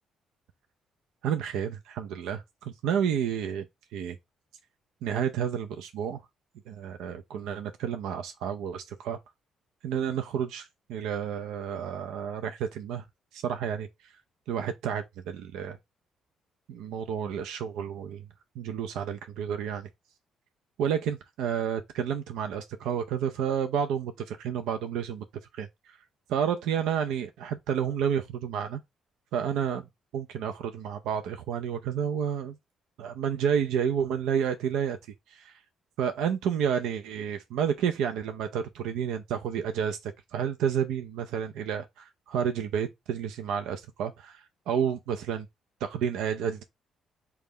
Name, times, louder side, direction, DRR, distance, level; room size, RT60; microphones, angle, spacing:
voice 1, 1.2-3.6 3.9-4.2 5.0-6.2 6.7-9.2 9.8-13.0 13.3-13.9 14.5-15.8 16.7-18.2 18.6-19.9 20.8-25.2 25.5-26.0 26.3-28.8 29.3-29.9 30.1-32.6 33.0-35.0 35.3-35.6 36.0-45.5 45.8-46.6, right 8 dB, 85° right, 0.4 m, -30 dB
3.8 x 2.3 x 3.5 m
supercardioid pair, 65°, 0 cm